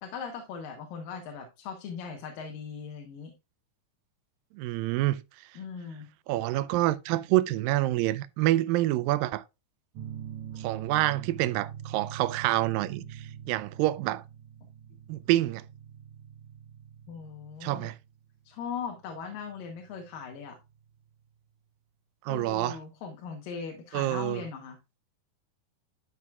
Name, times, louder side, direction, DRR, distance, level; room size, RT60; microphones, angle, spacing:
voice 1, 0.0-3.3 5.6-6.1 10.5-10.6 17.1-17.9 18.4-20.6 22.3-24.8, left 6 dB, 80° left, 2.8 m, -39 dB
voice 2, 4.6-5.2 6.3-9.4 10.6-14.2 15.1-15.6 17.6-18.0 22.2-22.8 23.9-24.4, right 16 dB, 90° right, 2.3 m, -27 dB
sound 1, 10.0-21.2, right 9 dB, 70° right, 2.2 m, -44 dB
12.0 x 6.0 x 2.3 m
omnidirectional pair, 4.0 m